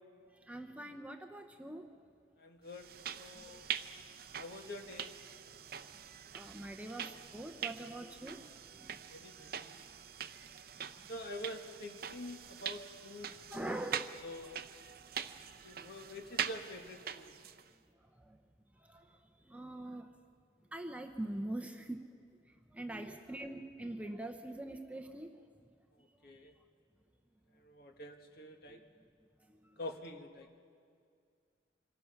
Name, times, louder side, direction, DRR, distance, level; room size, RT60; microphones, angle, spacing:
voice 1, 0.5-1.8 6.3-8.4 8.8-8.9 13.5-14.1 19.5-20.0 20.7-22.0 22.7-25.3, right 1 dB, 5° right, 5 dB, 0.7 m, -42 dB
voice 2, 2.4-3.7 4.4-5.1 9.1-9.8 11.1-13.4 14.2-14.7 15.6-17.3 26.2-26.5 27.6-28.8 29.8-30.5, left 1 dB, 55° left, 4 dB, 1.6 m, -47 dB
sound 1, 2.7-17.7, right 8 dB, 50° right, 0.6 m, -44 dB
26.0 x 20.0 x 5.8 m, 2.2 s
head